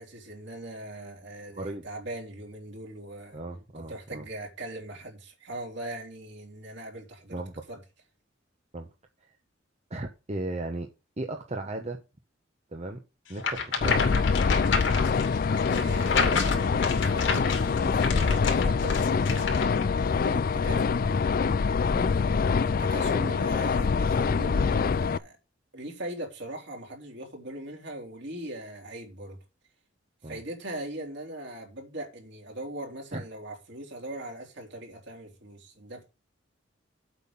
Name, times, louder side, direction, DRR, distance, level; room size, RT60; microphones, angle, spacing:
voice 1, 0.0-3.4 3.7-7.4 7.7-7.8 15.7-21.0 22.6-25.4 25.7-29.4 30.2-36.0, right 1 dB, 65° right, 3.7 m, -40 dB
voice 2, 1.5-1.8 3.3-4.3 7.3-7.5 8.7-8.9 9.9-10.9 11.2-12.0 12.7-13.0 13.3-14.4 21.9-22.2 30.2-30.4 33.1-33.2, right 2 dB, 35° right, 1.0 m, -36 dB
sound 1, 13.4-19.8, left 5 dB, 70° left, 2.8 m, -30 dB
sound 2, 13.8-25.2, left 5 dB, 50° left, 0.4 m, -25 dB
8.2 x 5.7 x 7.1 m
head